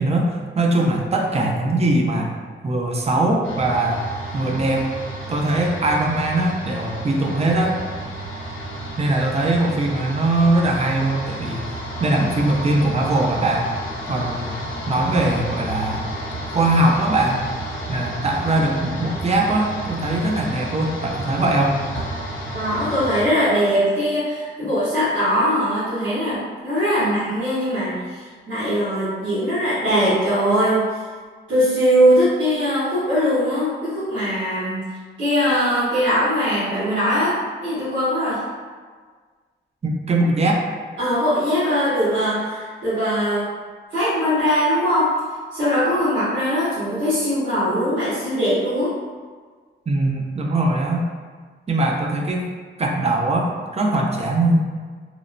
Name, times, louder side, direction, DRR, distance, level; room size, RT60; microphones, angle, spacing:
voice 1, 0.0-2.3 2.6-4.0 4.3-4.9 5.3-7.8 9.0-11.7 12.0-13.7 14.1-14.6 14.9-16.0 16.5-17.4 17.9-21.8 39.8-40.6 49.9-51.1 51.7-52.4 52.8-54.6, right 2 dB, 30° right, 0 dB, 0.5 m, -21 dB
sound 1, 3.4-23.2, right 1 dB, 80° left, 0.6 m, -31 dB
voice 2, 22.5-30.8 31.5-34.8 35.2-38.4 41.0-43.4 43.9-45.2 45.5-48.9, equal, 70° right, -14 dB, 1.2 m, -21 dB
3.0 x 2.0 x 2.5 m, 1.5 s
cardioid pair, 70°, 20 cm